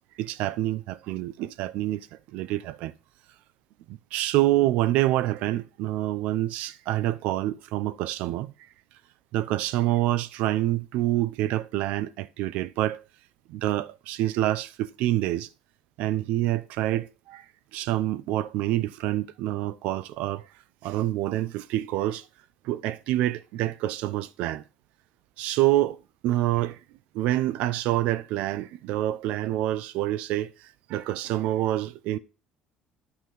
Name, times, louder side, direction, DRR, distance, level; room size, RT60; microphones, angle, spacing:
voice 1, 0.2-2.9 3.9-8.5 9.3-13.0 13.5-15.5 16.0-17.4 17.7-20.5 20.8-22.3 22.6-24.6 25.4-26.0 26.2-26.8 27.1-32.2, right 15 dB, 75° right, 0.7 m, -27 dB
10.5 x 5.9 x 3.8 m
cardioid pair, 120°, 2 cm